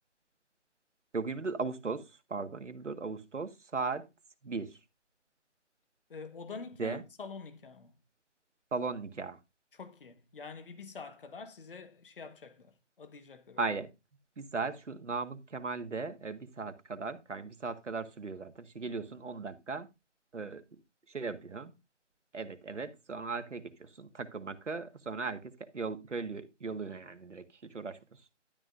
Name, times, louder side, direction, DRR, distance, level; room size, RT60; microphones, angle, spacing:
voice 1, 1.1-4.0 4.4-4.8 6.8-7.0 8.7-9.4 13.6-13.9 14.4-19.9 20.3-20.8 21.1-21.7 22.3-28.2, right 4 dB, 80° right, 1.8 m, -37 dB
voice 2, 6.1-7.9 9.7-13.6, left 4 dB, 50° left, 1.5 m, -46 dB
12.0 x 9.0 x 2.6 m
figure-of-eight pair, 160°, 36 cm